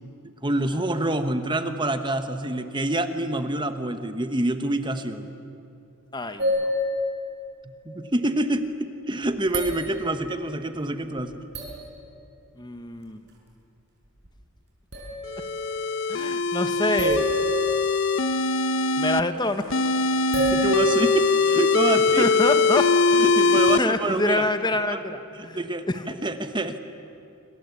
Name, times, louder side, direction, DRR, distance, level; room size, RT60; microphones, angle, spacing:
voice 1, 0.4-5.3 7.8-11.3 20.4-22.3 23.1-24.4 24.9-25.0 25.3-25.9 26.2-26.8, right 1 dB, 20° right, 9 dB, 1.2 m, -26 dB
voice 2, 6.1-6.8 12.6-13.2 16.1-17.3 19.0-19.7 21.8-22.9 23.4-25.6 25.9-26.0, left 2 dB, 20° left, 9 dB, 1.2 m, -27 dB
sound 1, 6.4-7.9 8.5-8.6 9.2-10.3 11.2-11.3 11.5-11.9 14.2-14.3 14.9-15.7 17.0-18.6 20.3-22.0 23.3-23.4, equal, 55° right, 6.6 m, -29 dB
sound 2, 15.3-19.2 19.7-23.8, left 3 dB, 60° left, 0.9 m, -22 dB
27.0 x 25.5 x 8.4 m, 2.6 s
head